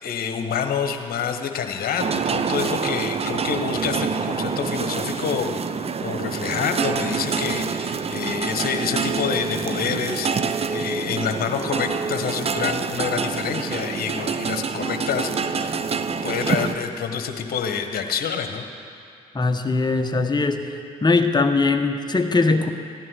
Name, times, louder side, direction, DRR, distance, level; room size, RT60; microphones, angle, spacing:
voice 1, 0.0-5.7 6.0-15.8 16.2-18.6, left 6 dB, 55° left, 6 dB, 1.4 m, -27 dB
sound 1, 2.0-16.8, right 5 dB, 35° right, 0.7 m, -26 dB
voice 2, 19.3-20.6 21.0-22.7, left 3 dB, 25° left, 5 dB, 1.3 m, -20 dB
15.0 x 11.0 x 6.4 m, 2.5 s
hypercardioid pair, 50°, 19 cm